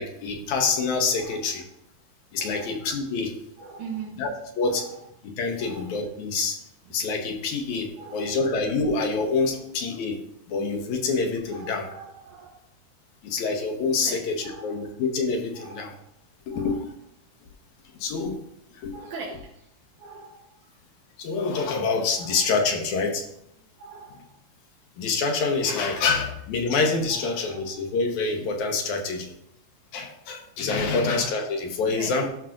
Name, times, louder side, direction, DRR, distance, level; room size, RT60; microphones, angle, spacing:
voice 1, 0.0-1.6 2.3-3.3 4.2-4.3 4.6-4.8 5.4-6.6 6.9-10.2 10.5-11.9 13.2-14.4 14.6-15.9 16.5-16.8 17.9-18.4 18.7-18.9 21.2-23.2 25.0-29.3 29.9-32.3, left 4 dB, 80° left, 3 dB, 2.4 m, -26 dB
voice 2, 1.2-1.6 2.4-2.8 3.6-4.2 4.6-5.0 5.6-6.0 8.0-8.4 9.5-9.6 11.5-12.6 14.0-14.9 15.5-16.0 16.5-16.8 18.9-19.7 20.0-20.7 22.2-22.4 23.8-24.3 25.9-26.1 27.1-27.8 30.8-31.1 31.9-32.2, right 4 dB, 90° right, -2 dB, 2.5 m, -42 dB
11.5 x 6.2 x 2.5 m, 0.76 s
omnidirectional pair, 3.4 m